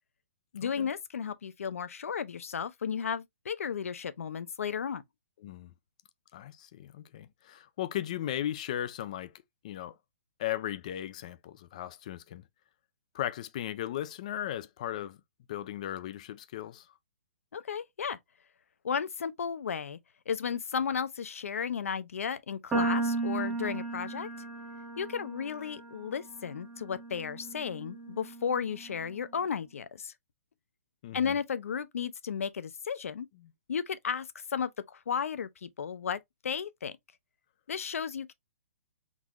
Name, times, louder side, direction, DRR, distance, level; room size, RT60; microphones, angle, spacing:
voice 1, 0.5-5.0 17.5-18.2 18.8-20.0 20.3-24.3 25.0-30.1 31.1-33.3 33.7-37.0 37.7-38.3, left 7 dB, 85° left, 0.6 m, -34 dB
voice 2, 6.3-9.3 9.6-9.9 10.4-12.4 13.1-15.2 15.5-16.9 31.0-31.4, left 12 dB, 30° left, 0.3 m, -36 dB
sound 1, 22.7-29.0, right 3 dB, 10° right, 0.7 m, -35 dB
3.8 x 2.5 x 2.9 m
hypercardioid pair, 170°, 7 cm